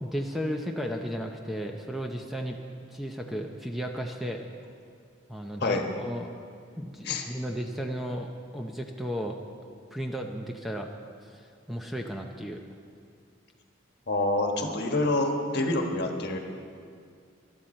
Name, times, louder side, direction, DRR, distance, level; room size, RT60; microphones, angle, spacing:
voice 1, 0.0-2.6 2.9-4.4 5.3-6.3 6.8-8.3 8.5-9.4 9.9-10.9 11.2-12.6, equal, ahead, 2 dB, 0.7 m, -34 dB
voice 2, 14.1-16.4, left 2 dB, 55° left, 3 dB, 1.4 m, -27 dB
20.0 x 12.0 x 4.3 m, 2.2 s
head